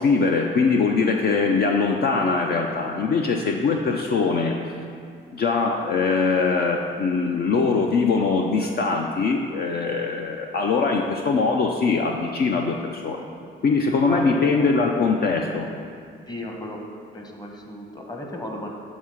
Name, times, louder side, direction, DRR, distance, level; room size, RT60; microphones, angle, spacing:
voice 1, 0.0-4.6 5.3-13.3 13.6-15.7, left 4 dB, 55° left, 1 dB, 0.5 m, -22 dB
voice 2, 14.0-15.1 16.3-16.8 17.1-18.7, left 1 dB, 20° left, 1 dB, 1.0 m, -34 dB
7.2 x 3.7 x 6.3 m, 2.2 s
cardioid pair, 90°, 20 cm